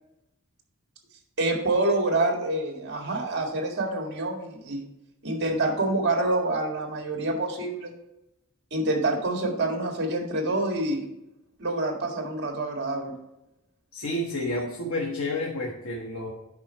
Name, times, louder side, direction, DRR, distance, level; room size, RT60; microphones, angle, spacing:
voice 1, 1.4-4.9 5.2-7.9 8.7-11.0 11.6-13.1, right 2 dB, 55° right, 2 dB, 1.8 m, -27 dB
voice 2, 13.9-16.3, left 1 dB, 80° left, 0 dB, 1.1 m, -30 dB
8.8 x 5.5 x 4.4 m, 0.90 s
head